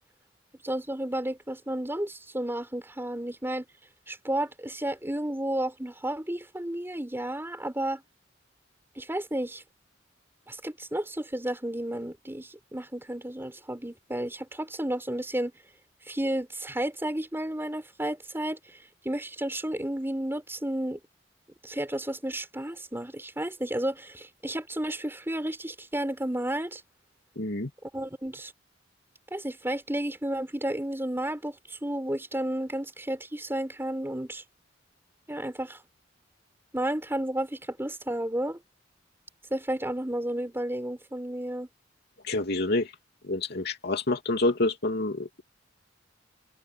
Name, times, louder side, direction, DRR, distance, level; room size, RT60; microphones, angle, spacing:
voice 1, 0.6-3.7 4.1-8.0 9.0-9.6 10.5-15.5 16.1-18.6 19.0-21.0 21.6-26.8 27.8-28.5 29.3-34.4 35.3-35.8 36.7-38.6 39.5-41.7, right 1 dB, 10° right, 5.1 m, -32 dB
voice 2, 27.4-27.7 42.2-42.9 43.2-45.4, left 2 dB, 60° left, 3.0 m, -28 dB
head